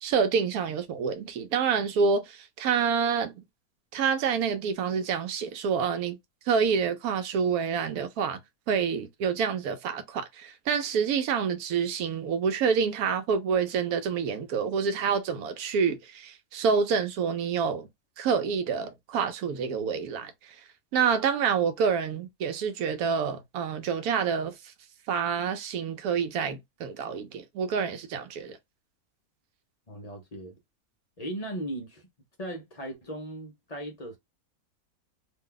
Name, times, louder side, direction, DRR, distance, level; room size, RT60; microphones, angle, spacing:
voice 1, 0.0-3.4 3.9-6.2 6.5-8.4 8.7-17.9 18.2-20.3 20.9-24.5 25.1-28.6, right 6 dB, 80° right, 1.1 m, -27 dB
voice 2, 29.9-30.5 31.2-32.0 32.4-34.2, right 1 dB, 45° left, 0.5 m, -37 dB
2.7 x 2.2 x 3.6 m
omnidirectional pair, 1.5 m